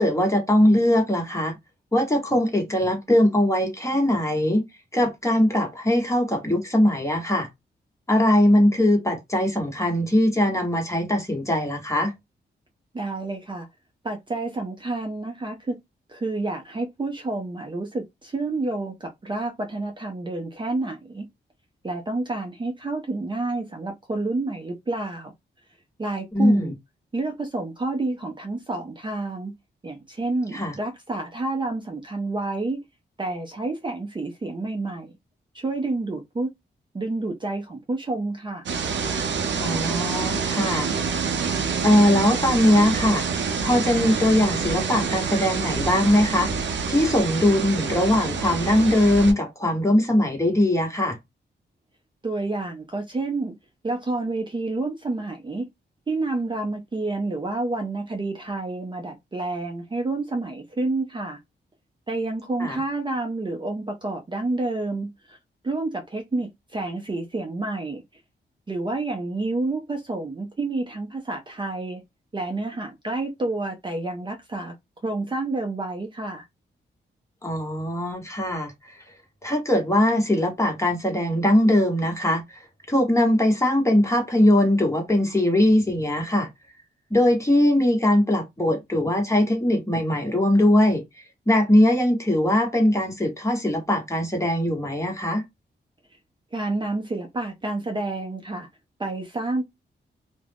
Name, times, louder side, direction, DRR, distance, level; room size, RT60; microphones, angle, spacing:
voice 1, 0.0-1.6 1.9-4.6 4.9-7.5 8.1-12.1 26.3-26.7 30.5-30.7 39.6-40.9 41.8-43.2 43.6-51.2 62.6-62.8 77.4-79.0 79.4-86.5 87.1-91.0 91.5-95.4, left 1 dB, 15° left, 1.1 m, -21 dB
voice 2, 12.9-13.7 14.0-15.8 16.1-21.3 21.8-25.3 26.0-26.7 27.1-29.5 29.8-32.8 33.2-35.1 35.5-36.5 36.9-38.7 52.2-53.5 53.8-55.7 56.1-61.4 62.1-65.4 65.6-68.0 68.7-72.0 72.3-74.7 75.0-76.4 96.5-98.7 99.0-99.6, right 2 dB, 25° right, 0.5 m, -29 dB
sound 1, 38.7-49.3, right 5 dB, 75° right, 0.5 m, -27 dB
2.3 x 2.1 x 3.3 m
cardioid pair, 85°, 19 cm